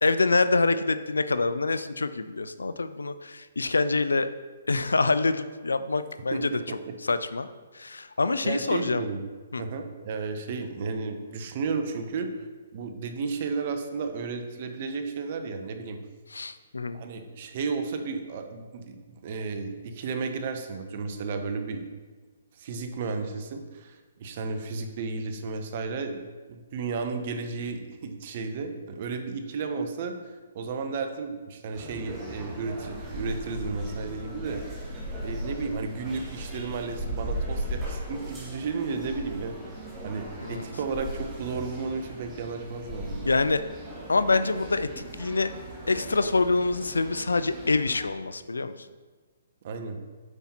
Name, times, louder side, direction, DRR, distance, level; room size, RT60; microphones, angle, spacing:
voice 1, 0.0-4.3 4.7-6.5 7.0-7.5 7.7-9.0 9.5-9.6 16.3-17.0 40.4-40.7 43.3-43.6 44.1-45.5 45.9-48.7, left 3 dB, 80° left, 12 dB, 0.4 m, -26 dB
voice 2, 6.3-6.9 8.4-9.2 9.6-12.3 12.7-16.0 16.9-21.8 22.6-26.2 26.5-34.9 35.2-39.6 40.0-43.3 49.6-50.0, right 4 dB, 45° right, 6 dB, 0.8 m, -33 dB
sound 1, 31.7-48.0, right 1 dB, 15° right, 2.0 m, -38 dB
8.0 x 5.5 x 2.9 m, 1.4 s
figure-of-eight pair, 130°, 0 cm